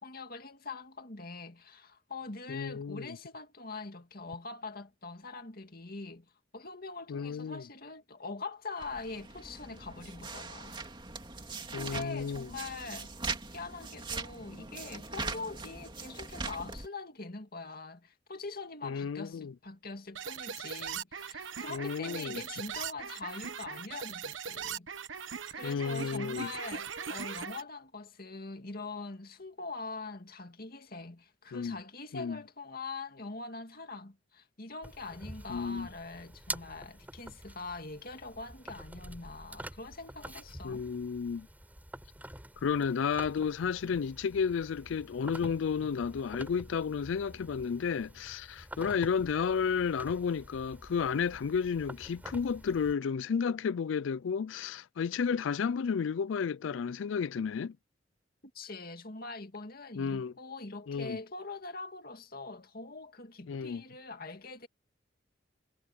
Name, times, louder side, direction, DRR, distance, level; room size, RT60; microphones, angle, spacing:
voice 1, 0.0-10.8 11.3-13.1 13.5-24.9 25.5-40.8 58.5-64.7, left 3 dB, 50° left, 2.3 m, -43 dB
voice 2, 2.5-3.2 7.1-7.6 11.7-12.5 18.8-19.5 21.7-22.4 25.6-26.5 31.5-31.8 32.1-32.4 35.5-35.9 40.6-41.5 42.6-57.7 60.0-60.3 60.9-61.2 63.5-63.8, left 6 dB, 80° left, 0.4 m, -32 dB
sound 1, 8.8-16.9, right 3 dB, 25° right, 2.6 m, -41 dB
sound 2, 20.2-27.6, right 7 dB, 80° right, 1.2 m, -40 dB
sound 3, 34.8-52.9, right 1 dB, 10° right, 5.3 m, -48 dB
head